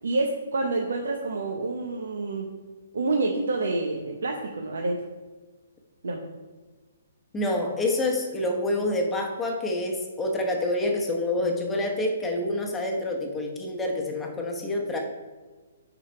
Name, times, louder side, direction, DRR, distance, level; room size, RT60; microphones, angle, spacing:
voice 1, 0.0-2.5 2.9-5.0 6.0-6.2, right 3 dB, 85° right, 1 dB, 1.0 m, -28 dB
voice 2, 7.3-15.0, left 1 dB, 10° left, 1 dB, 1.0 m, -27 dB
9.9 x 3.9 x 4.5 m, 1.3 s
hypercardioid pair, 170°, 0 cm